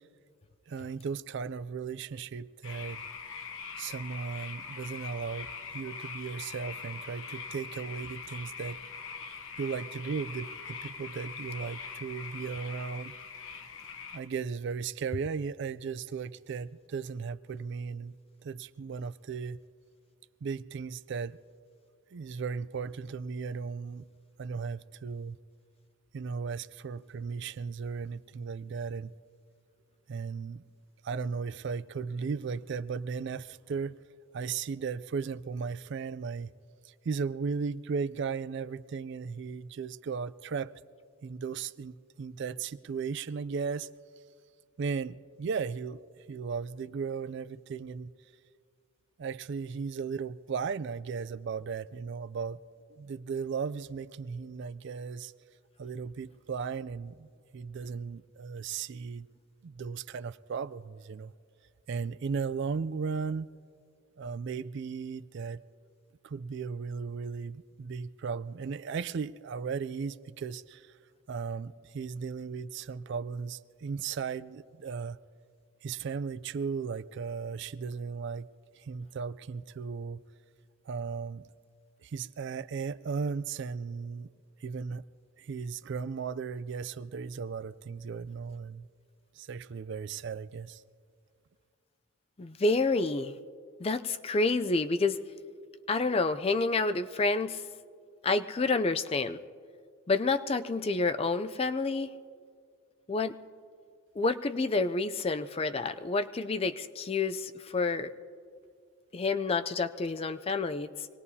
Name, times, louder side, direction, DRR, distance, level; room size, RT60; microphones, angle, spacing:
voice 1, 0.7-3.0 3.8-8.8 9.6-13.1 14.1-18.2 18.4-19.6 20.4-21.4 22.1-24.1 24.4-25.4 26.1-29.1 30.1-30.6 31.0-34.0 34.3-36.5 36.8-40.7 41.2-43.9 44.8-48.1 49.2-52.6 52.9-55.3 55.8-59.3 59.6-61.3 61.9-63.5 64.2-65.6 66.2-71.0 71.3-75.2 75.8-78.5 78.8-80.2 80.9-81.5 82.0-84.3 84.6-85.0 85.4-88.9 89.4-90.8, right 5 dB, 55° right, 0.3 m, -36 dB
sound 1, 2.6-14.2, left 5 dB, 60° left, 1.0 m, -42 dB
voice 2, 92.4-93.3 93.8-95.2 95.9-97.6 98.2-99.4 100.1-102.1 103.1-103.4 104.2-108.1 109.1-111.1, left 3 dB, 25° left, 0.4 m, -29 dB
25.5 x 19.0 x 2.8 m
head